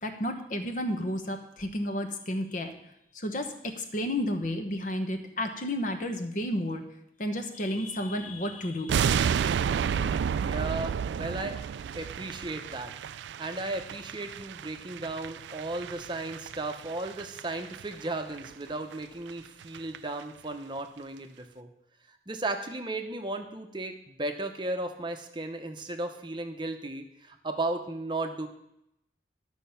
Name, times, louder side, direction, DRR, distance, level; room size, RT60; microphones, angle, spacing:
voice 1, 0.0-2.7 3.1-6.8 7.2-9.1, left 1 dB, 45° left, 6 dB, 1.1 m, -32 dB
sound 1, 8.9-18.1 18.3-18.5 18.9-19.0 19.3-19.4 19.6-20.0 20.2-20.3, right 7 dB, 85° right, 0.3 m, -31 dB
voice 2, 10.4-11.6 11.9-12.9 13.4-21.7 22.1-28.5, right 2 dB, 25° right, 6 dB, 0.8 m, -35 dB
11.5 x 6.4 x 5.6 m, 0.80 s
head